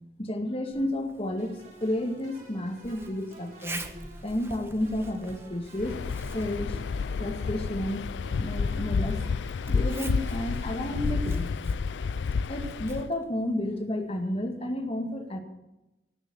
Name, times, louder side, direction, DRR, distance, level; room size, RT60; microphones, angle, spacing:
voice 1, 0.2-3.9 4.2-6.0 6.3-6.8 7.2-8.1 8.4-9.2 9.7-11.6 11.9-12.2 12.5-15.4, left 1 dB, 35° left, 5 dB, 1.9 m, -31 dB
Zipper (clothing), 0.7-14.3, right 2 dB, 15° right, 1.2 m, -47 dB
sound 1, 1.4-12.1, right 1 dB, 50° right, 4.6 m, -52 dB
Waves surf, 5.8-13.1, left 5 dB, 75° left, 0.4 m, -30 dB
19.0 x 7.2 x 7.0 m, 0.96 s
head